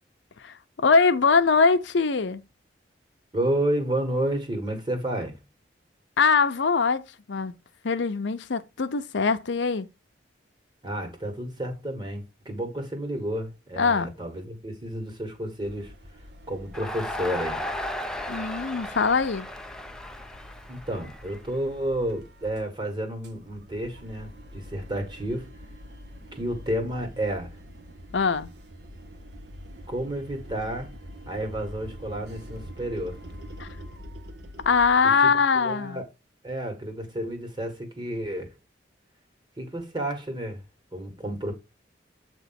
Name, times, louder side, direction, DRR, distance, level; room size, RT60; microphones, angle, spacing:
voice 1, 0.4-2.4 6.2-7.0 7.3-7.5 7.8-9.9 13.8-14.1 18.3-19.5 28.1-28.5 33.6-33.7 34.6-36.0, left 5 dB, 80° left, 0.6 m, -22 dB
voice 2, 3.3-5.4 10.8-15.9 16.5-17.6 20.7-25.5 26.3-27.6 29.9-30.9 31.3-33.2 35.2-35.3 35.6-36.0 36.4-38.5 39.6-40.6 40.9-41.5, right 1 dB, 25° right, 1.7 m, -31 dB
sound 1, 15.6-22.7 23.0-35.0, equal, 60° right, 1.0 m, -45 dB
Crowd, 16.7-21.9, left 1 dB, 5° left, 0.5 m, -35 dB
7.9 x 3.0 x 5.8 m
head